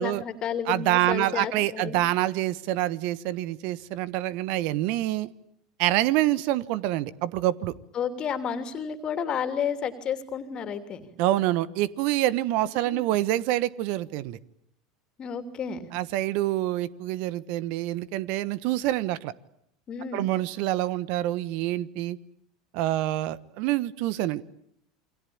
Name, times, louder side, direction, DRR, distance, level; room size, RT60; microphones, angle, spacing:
voice 1, 0.0-2.0 7.9-11.1 12.8-13.0 15.2-15.9 19.9-20.3, left 7 dB, 40° left, 7 dB, 3.1 m, -31 dB
voice 2, 0.7-5.3 5.8-7.7 11.2-14.4 15.9-19.3 20.1-22.2 22.7-24.4, right 15 dB, 60° right, 17 dB, 1.2 m, -26 dB
28.5 x 23.5 x 8.8 m, 0.72 s
hypercardioid pair, 85°, 2 cm